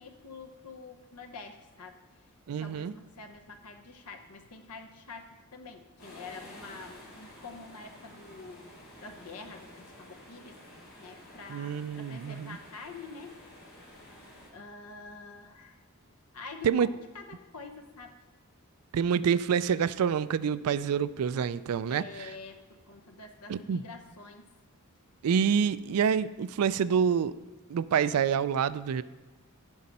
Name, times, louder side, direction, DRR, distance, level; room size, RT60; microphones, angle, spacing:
voice 1, 0.0-2.0 2.6-8.7 9.0-10.6 11.0-13.4 14.5-15.8 16.3-18.1 21.9-24.5, left 4 dB, 90° left, 5 dB, 0.9 m, -46 dB
voice 2, 2.5-2.9 11.5-12.6 16.6-16.9 18.9-22.3 23.5-23.8 25.2-27.4 27.7-29.0, right 7 dB, 85° right, 16 dB, 0.4 m, -27 dB
sound 1, 6.0-14.5, left 1 dB, 65° left, 3.0 m, -51 dB
14.5 x 5.3 x 4.2 m, 1.2 s
head